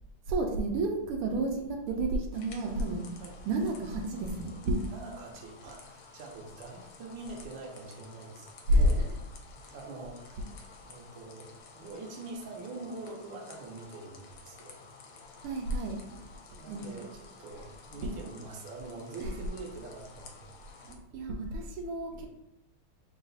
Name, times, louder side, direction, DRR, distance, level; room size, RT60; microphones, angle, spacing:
voice 1, 0.3-4.9 8.7-9.1 15.4-16.3 16.7-17.0 18.0-18.2 20.8-22.3, right 1 dB, 90° right, 2 dB, 1.6 m, -30 dB
sound 1, 2.3-20.9, left 4 dB, 85° left, 1.5 m, -52 dB
voice 2, 4.9-9.0 9.7-10.5 10.8-14.8 16.6-20.5, right 3 dB, 70° right, 0 dB, 1.4 m, -44 dB
3.9 x 2.4 x 3.8 m, 0.84 s
omnidirectional pair, 2.4 m